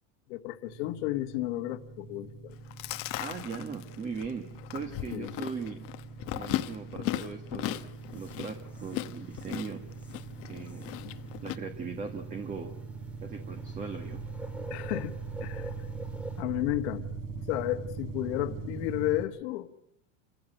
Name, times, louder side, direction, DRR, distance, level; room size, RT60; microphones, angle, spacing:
voice 1, 0.3-2.5 5.1-5.3 11.0-11.2 14.7-15.7 16.4-17.1 17.5-19.7, left 16 dB, 65° left, 9 dB, 1.6 m, -33 dB
sound 1, 0.7-19.3, right 4 dB, 60° right, 3.6 m, -42 dB
Chewing mastication, 2.5-11.6, left 15 dB, 35° left, 1.0 m, -37 dB
voice 2, 3.2-5.8 6.3-9.8 10.4-10.9 11.4-12.7 13.2-14.2, right 5 dB, 20° right, 6 dB, 1.6 m, -39 dB
sound 2, 8.0-16.4, right 1 dB, 5° right, 1.8 m, -48 dB
28.0 x 15.5 x 7.8 m, 0.82 s
supercardioid pair, 165°, 37 cm